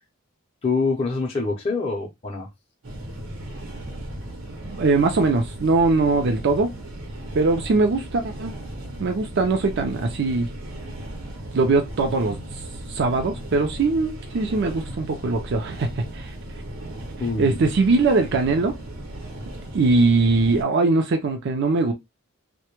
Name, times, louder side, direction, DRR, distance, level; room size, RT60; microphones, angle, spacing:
voice 1, 0.6-2.5 17.2-17.6, left 4 dB, 30° left, 0.5 m, -25 dB
sound 1, 2.8-20.6, right 1 dB, 75° right, 0.8 m, -36 dB
voice 2, 4.6-6.7 7.3-8.5 9.0-10.5 11.5-16.4 17.4-18.7 19.7-21.9, right 3 dB, 55° right, 0.4 m, -21 dB
2.1 x 2.1 x 2.9 m
head